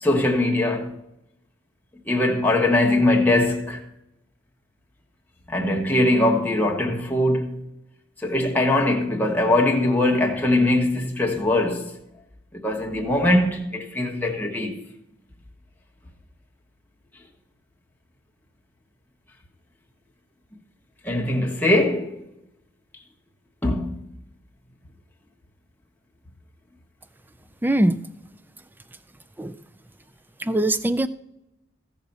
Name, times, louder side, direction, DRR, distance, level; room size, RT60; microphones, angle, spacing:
voice 1, 0.0-0.9 2.1-3.8 5.5-7.6 8.2-12.0 12.5-14.8 21.0-22.2 23.6-24.0, left 1 dB, 10° left, 1.2 m, -21 dB
voice 2, 27.6-28.0 29.4-29.5 30.4-31.1, right 1 dB, 10° right, 0.3 m, -21 dB
15.5 x 5.7 x 5.4 m
head